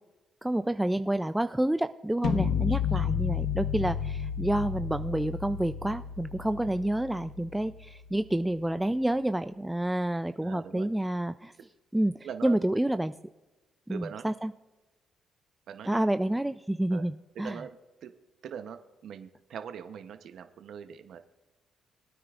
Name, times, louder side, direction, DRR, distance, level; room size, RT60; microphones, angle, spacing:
voice 1, 0.4-11.5 11.9-13.1 13.9-14.5 15.9-17.1 17.4-17.6, right 1 dB, 5° right, 11 dB, 0.3 m, -29 dB
sound 1, 2.2-8.2, left 7 dB, 75° left, 0.9 m, -32 dB
voice 2, 2.7-3.1 10.4-10.9 12.2-12.6 13.9-14.3 15.7-16.0 16.9-17.0 17.4-18.1 18.4-21.2, right 7 dB, 70° right, 8 dB, 0.7 m, -42 dB
21.5 x 9.4 x 2.4 m, 1.2 s
cardioid pair, 90°, 0 cm